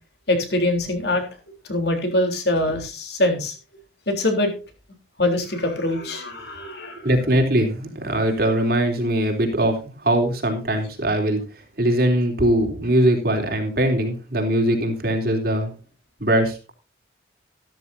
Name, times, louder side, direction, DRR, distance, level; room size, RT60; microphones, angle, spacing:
voice 1, 0.3-1.2 1.7-3.5 4.1-4.5 5.2-7.1, left 1 dB, 60° left, 4 dB, 3.7 m, -23 dB
voice 2, 7.0-11.4 11.8-15.7 16.2-16.7, right 1 dB, 50° right, 3 dB, 3.4 m, -21 dB
13.5 x 13.5 x 2.7 m, 0.31 s
head